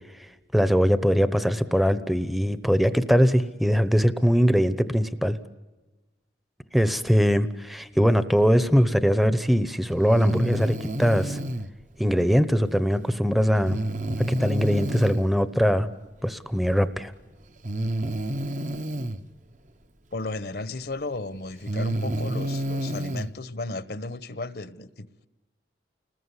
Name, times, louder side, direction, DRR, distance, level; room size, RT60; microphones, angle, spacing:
voice 1, 0.1-5.4 6.7-11.4 12.0-13.8 14.3-15.9 16.2-17.1, equal, ahead, 12 dB, 0.9 m, -22 dB
Breathing, 10.1-11.7 13.6-15.3 16.6-16.7 17.6-19.2 20.7-20.8 21.5-23.3, right 1 dB, 40° right, 1.1 m, -29 dB
voice 2, 20.1-25.3, left 2 dB, 55° left, 15 dB, 1.1 m, -34 dB
30.0 x 20.5 x 9.8 m, 1.1 s
head